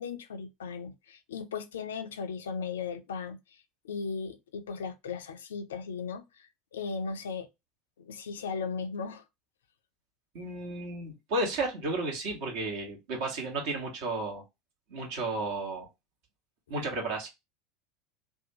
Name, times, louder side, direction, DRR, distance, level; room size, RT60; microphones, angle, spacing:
voice 1, 0.0-3.4 3.8-7.5 8.0-9.2, left 5 dB, 70° left, 0.4 m, -37 dB
voice 2, 10.3-14.4 14.9-15.9 16.7-17.3, right 2 dB, 55° right, 1.1 m, -33 dB
2.7 x 2.2 x 2.7 m
figure-of-eight pair, 75°, 0 cm